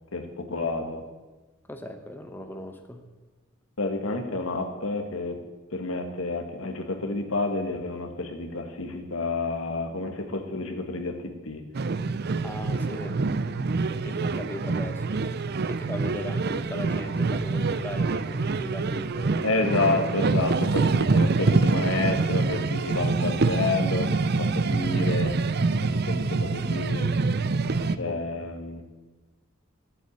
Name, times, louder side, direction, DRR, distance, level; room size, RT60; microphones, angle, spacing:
voice 1, 0.1-1.0 3.8-5.4 5.7-11.6 19.4-25.4 25.8-27.2 28.0-28.8, left 3 dB, 75° left, 5 dB, 1.7 m, -29 dB
voice 2, 1.7-3.0 12.4-13.2 14.0-15.2 15.7-19.4 28.0-28.5, left 1 dB, 10° left, 6 dB, 0.9 m, -38 dB
sound 1, 11.7-28.0, right 3 dB, 50° right, 0.5 m, -25 dB
12.0 x 8.2 x 8.5 m, 1.2 s
head